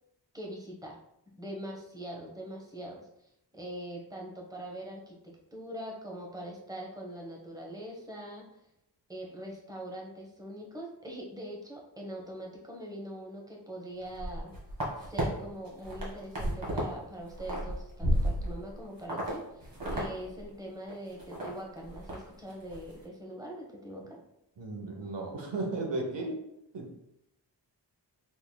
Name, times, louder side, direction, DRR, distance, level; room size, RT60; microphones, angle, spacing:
voice 1, 0.3-1.0 1.4-3.0 3.5-8.4 9.1-14.5 15.0-24.2, right 1 dB, 10° right, -1 dB, 1.0 m, -42 dB
sound 1, 14.1-15.2 15.7-16.9 17.2-18.7 19.1-19.3 19.6-20.1 20.4-20.5 20.9-21.5 21.8-22.2 22.5-22.8, equal, 55° right, 1.6 m, -32 dB
voice 2, 24.6-26.4 26.7-26.9, right 2 dB, 90° right, 1 dB, 1.0 m, -35 dB
5.5 x 3.4 x 2.2 m, 0.81 s
wide cardioid pair, 80°, 42 cm